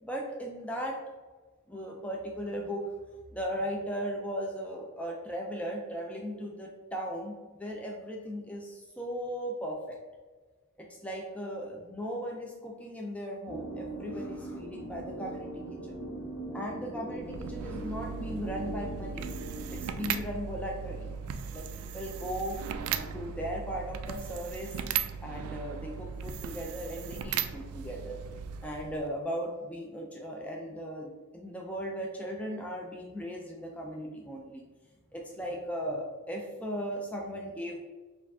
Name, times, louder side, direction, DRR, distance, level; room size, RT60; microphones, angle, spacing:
voice 1, 0.0-1.0 1.7-2.8 3.3-10.0 10.8-16.0 16.5-19.3 19.7-21.1 21.5-22.6 22.9-24.7 25.2-28.2 28.6-34.6 35.1-37.8, equal, 5° left, -1 dB, 0.4 m, -37 dB
sound 1, 13.5-20.2, right 2 dB, 85° left, 1.3 m, -40 dB
sound 2, 17.1-29.1, right 7 dB, 90° right, 0.3 m, -37 dB
4.8 x 2.4 x 3.5 m, 1.3 s
head